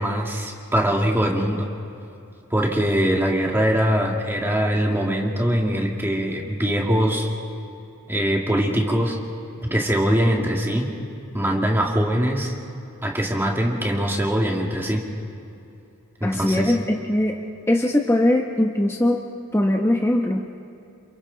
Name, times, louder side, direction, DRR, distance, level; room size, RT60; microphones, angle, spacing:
voice 1, 0.0-1.7 2.5-7.3 8.1-9.2 9.7-10.9 11.3-12.5 13.0-15.0 16.2-16.7, equal, 10° right, 0 dB, 2.0 m, -22 dB
voice 2, 16.2-17.4 17.7-19.2 19.5-20.4, left 1 dB, 10° left, 1 dB, 0.9 m, -20 dB
29.0 x 27.5 x 3.9 m, 2.7 s
head